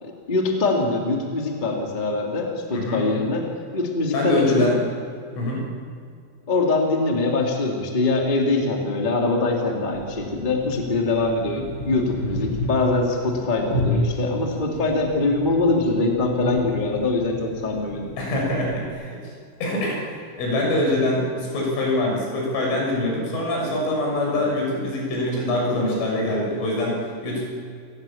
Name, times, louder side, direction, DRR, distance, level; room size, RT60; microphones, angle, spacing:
voice 1, 0.0-3.5 3.7-4.7 6.5-18.1, left 3 dB, 15° left, 0 dB, 2.0 m, -23 dB
voice 2, 2.7-3.0 4.1-4.8 5.4-5.6 18.2-19.2 19.6-27.5, left 1 dB, 80° left, -2 dB, 9.1 m, -24 dB
sound 1, 9.9-18.9, left 1 dB, 40° left, 1.3 m, -31 dB
29.5 x 17.5 x 7.4 m, 2.3 s
omnidirectional pair, 5.6 m